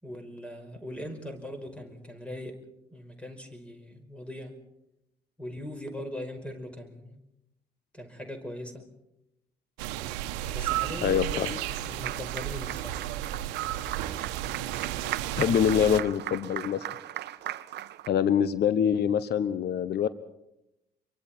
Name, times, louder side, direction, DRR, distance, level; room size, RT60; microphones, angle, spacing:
voice 1, 0.0-2.6 2.9-4.6 5.4-7.2 7.9-8.9 10.5-13.1, left 1 dB, 5° left, 6 dB, 5.4 m, -40 dB
sound 1, 9.8-16.0, right 13 dB, 75° right, 1.2 m, -33 dB
voice 2, 11.0-11.6 15.4-16.9 18.1-20.1, left 9 dB, 50° left, 15 dB, 1.1 m, -25 dB
Applause, 11.1-18.1, right 12 dB, 55° right, 0.9 m, -38 dB
28.0 x 23.5 x 4.5 m, 0.86 s
hypercardioid pair, 55°, 21 cm